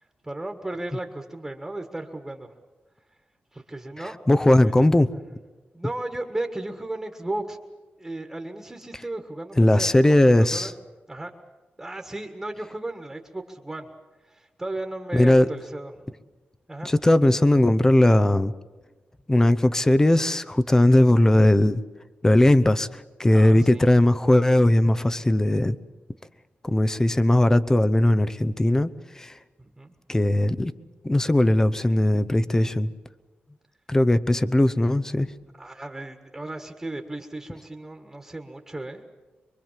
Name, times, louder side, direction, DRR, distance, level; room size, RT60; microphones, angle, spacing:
voice 1, 0.2-2.5 3.5-4.2 4.4-5.2 5.7-7.6 8.0-10.7 11.1-11.3 11.8-13.9 14.2-16.2 16.7-16.9 23.3-23.9 29.6-29.9 35.6-39.0, right 2 dB, 10° right, 4 dB, 1.6 m, -35 dB
voice 2, 4.3-5.1 9.6-10.7 15.1-15.5 16.8-18.5 19.3-21.8 22.2-25.8 26.6-28.9 29.2-29.3 30.1-30.7 31.0-32.9 33.9-35.3, left 1 dB, 15° left, 12 dB, 0.8 m, -19 dB
24.0 x 24.0 x 7.5 m, 1.2 s
wide cardioid pair, 145°, 4 cm